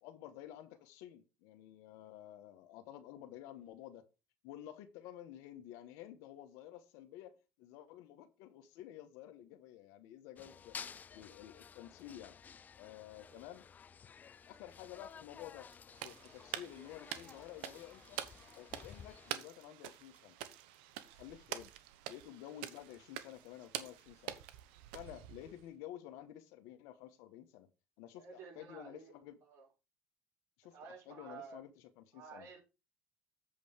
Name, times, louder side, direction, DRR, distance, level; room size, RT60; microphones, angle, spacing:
voice 1, 0.0-4.1 4.4-12.3 12.8-13.6 14.5-15.7 16.0-18.2 18.6-20.4 21.1-21.7 22.1-24.4 24.9-27.7 28.0-29.4 30.6-32.5, left 12 dB, 80° left, 1.3 m, -52 dB
sound 1, 10.4-19.3, left 7 dB, 30° left, 0.4 m, -53 dB
sound 2, 15.0-15.8 16.0-16.7 17.0-17.1 17.3-20.2 20.5-20.9, right 4 dB, 30° right, 3.1 m, -72 dB
sound 3, 15.9-25.7, right 12 dB, 90° right, 0.9 m, -47 dB
voice 2, 28.1-29.1 29.4-29.7 30.7-31.6 32.1-32.6, right 6 dB, 60° right, 4.1 m, -52 dB
7.8 x 5.2 x 5.1 m
supercardioid pair, 95°, 5 cm